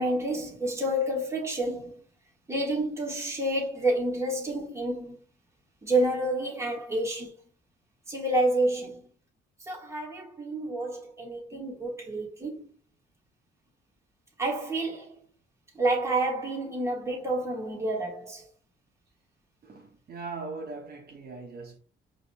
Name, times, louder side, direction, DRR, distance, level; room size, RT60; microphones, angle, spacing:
voice 1, 0.0-2.0 2.5-5.2 5.8-7.3 8.1-9.0 9.7-12.7 14.4-15.1 15.7-18.4, right 1 dB, 15° right, 1.5 m, -29 dB
voice 2, 19.6-21.8, right 3 dB, 50° right, 1.3 m, -40 dB
4.8 x 2.6 x 2.2 m
cardioid pair, 90°, 20 cm